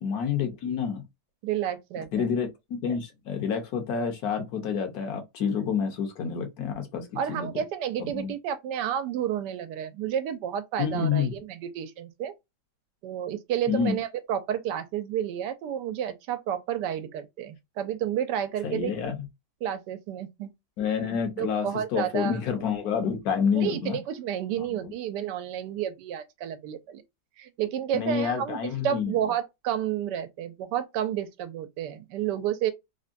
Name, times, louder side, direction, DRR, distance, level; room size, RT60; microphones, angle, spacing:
voice 1, 0.0-1.0 2.1-7.5 8.0-8.3 10.8-11.3 13.7-14.0 18.6-19.3 20.8-24.0 24.6-24.9 27.9-29.3, left 6 dB, 65° left, 1.2 m, -28 dB
voice 2, 1.4-2.3 7.2-12.3 13.0-18.9 19.6-20.5 21.4-22.4 23.5-27.0 27.4-28.6 28.8-32.7, right 10 dB, 80° right, 1.2 m, -31 dB
3.5 x 2.1 x 2.5 m
omnidirectional pair, 1.8 m